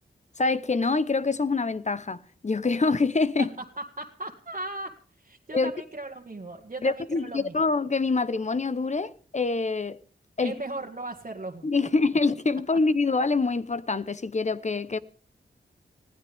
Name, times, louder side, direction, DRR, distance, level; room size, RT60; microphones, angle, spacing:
voice 1, 0.4-3.5 5.5-5.7 6.8-10.0 10.4-10.6 11.6-15.0, left 3 dB, 35° left, 1.0 m, -25 dB
voice 2, 3.8-7.5 10.4-11.9, right 2 dB, 40° right, 1.9 m, -37 dB
21.0 x 16.0 x 3.6 m
wide cardioid pair, 80°, 19 cm